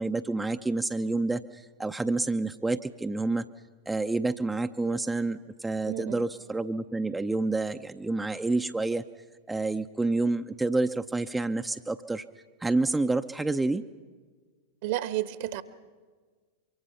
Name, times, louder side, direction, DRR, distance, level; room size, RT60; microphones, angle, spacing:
voice 1, 0.0-3.4 3.9-9.0 9.5-12.2 12.6-13.8, right 3 dB, 10° right, 7 dB, 0.6 m, -28 dB
voice 2, 5.8-6.2 14.8-15.6, right 14 dB, 55° right, 13 dB, 1.2 m, -31 dB
24.0 x 23.5 x 5.7 m, 1.5 s
figure-of-eight pair, 95°, 0 cm